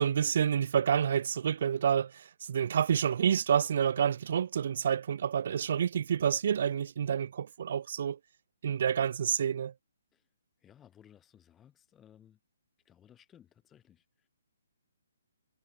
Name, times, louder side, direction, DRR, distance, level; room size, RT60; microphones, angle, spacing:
voice 1, 0.0-8.2 8.6-9.7, right 8 dB, 55° right, 0.9 m, -28 dB
voice 2, 10.6-12.4 12.9-14.3, left 10 dB, 15° left, 6.9 m, -60 dB
figure-of-eight pair, 140°, 0 cm